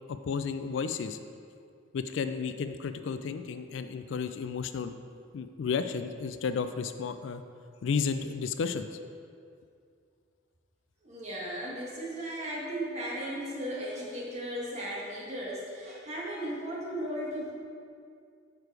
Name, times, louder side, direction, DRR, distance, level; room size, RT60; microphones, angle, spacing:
voice 1, 0.1-1.2 1.9-4.9 5.3-7.4 7.8-8.9, left 5 dB, 70° left, 10 dB, 0.3 m, -32 dB
voice 2, 11.0-17.5, right 1 dB, 35° right, -4 dB, 1.4 m, -36 dB
6.8 x 4.7 x 4.7 m, 2.3 s
head